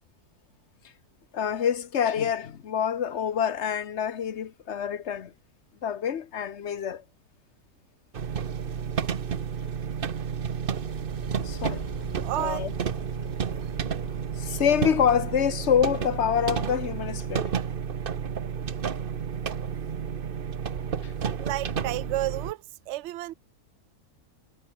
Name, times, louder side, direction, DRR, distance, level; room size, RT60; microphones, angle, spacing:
voice 1, 1.3-5.3 5.8-7.0 11.4-11.8 12.4-12.7 14.4-17.5 21.0-21.1, left 8 dB, 50° left, 1.2 m, -26 dB
sound 1, 8.1-22.5, right 7 dB, 40° right, 1.0 m, -31 dB
Car / Engine, 10.5-15.0, right 1 dB, 10° right, 1.6 m, -44 dB
voice 2, 12.2-12.7 13.5-13.7 21.4-22.6 22.9-23.3, right 16 dB, 65° right, 0.7 m, -31 dB
omnidirectional pair, 1.6 m